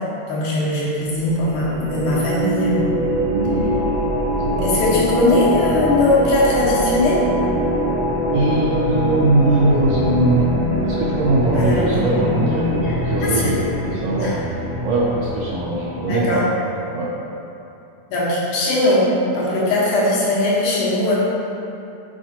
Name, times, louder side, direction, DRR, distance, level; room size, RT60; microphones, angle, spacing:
voice 1, 0.3-2.7 4.6-7.2 11.5-12.1 13.2-13.5 14.2-14.4 16.1-16.4 18.1-19.1 19.3-21.1, left 2 dB, 80° left, -7 dB, 2.9 m, -19 dB
sound 1, 1.0-16.4, equal, 90° right, 1.1 m, -23 dB
voice 2, 3.3-3.8 4.4-4.7 8.3-10.5 10.8-14.3 14.8-16.4 16.9-17.1, right 2 dB, 75° right, -5 dB, 1.6 m, -20 dB
7.5 x 5.5 x 2.9 m, 2.7 s
omnidirectional pair, 3.6 m